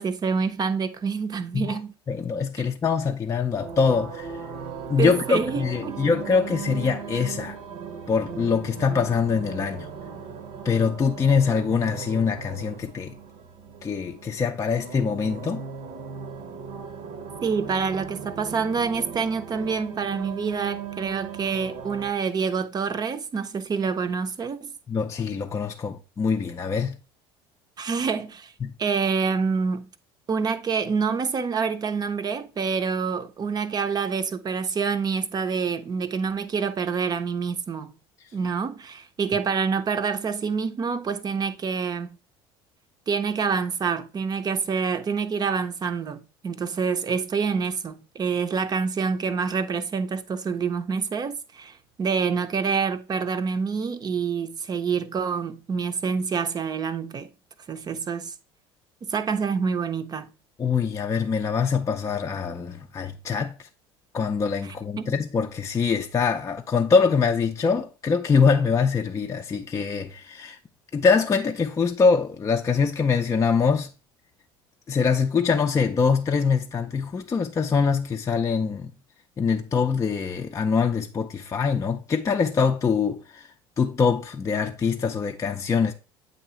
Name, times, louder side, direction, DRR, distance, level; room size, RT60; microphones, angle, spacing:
voice 1, 0.0-1.9 5.0-6.0 17.4-24.7 27.8-28.5 28.8-29.9 30.3-38.0 38.3-42.2 43.1-51.7 52.0-57.3 57.7-58.3 59.0-60.3 64.6-65.1, right 5 dB, 35° right, 0.7 m, -27 dB
voice 2, 2.1-4.3 4.9-7.6 8.1-9.9 10.6-13.1 13.8-15.6 24.9-27.0 28.6-28.7 60.6-63.7 64.1-70.6 70.9-73.9 74.9-78.9 79.4-83.5 83.8-85.9, left 5 dB, 25° left, 0.5 m, -24 dB
sound 1, 3.6-22.1, right 6 dB, 60° right, 0.9 m, -38 dB
7.9 x 2.8 x 4.2 m
hypercardioid pair, 80°, 12 cm